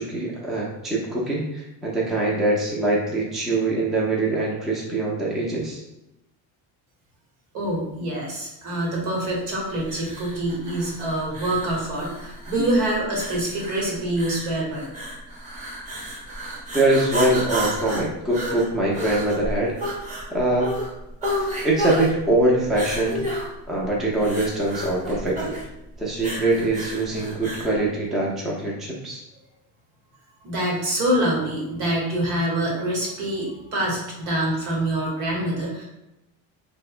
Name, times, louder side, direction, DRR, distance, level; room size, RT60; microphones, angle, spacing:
voice 1, 0.0-5.8 16.7-19.7 20.3-20.7 21.6-23.3 23.7-25.6 26.0-29.2, right 2 dB, ahead, -4 dB, 0.3 m, -23 dB
voice 2, 7.5-14.9 30.4-35.8, right 1 dB, 85° right, -3 dB, 1.0 m, -25 dB
sound 1, 9.9-27.8, equal, 15° right, 0.7 m, -32 dB
2.7 x 2.1 x 2.4 m, 0.92 s
cardioid pair, 115°, 42 cm